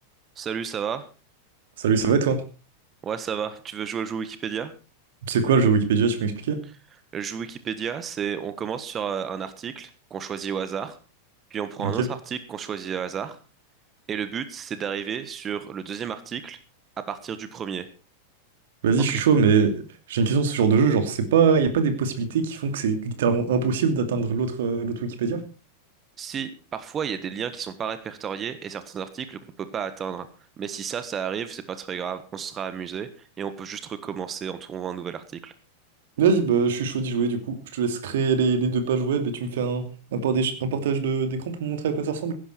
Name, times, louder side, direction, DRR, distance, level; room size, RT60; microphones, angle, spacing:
voice 1, 0.4-1.1 3.0-4.7 7.1-11.0 11.5-13.4 14.1-16.6 17.0-17.9 19.1-19.2 26.2-30.3 30.6-35.5, right 7 dB, 25° right, 12 dB, 1.4 m, -32 dB
voice 2, 1.8-2.4 5.2-6.6 12.0-12.1 18.8-19.8 20.1-25.4 36.2-42.3, right 5 dB, 55° right, 8 dB, 2.6 m, -22 dB
16.0 x 11.5 x 4.5 m, 0.33 s
figure-of-eight pair, 90°, 0 cm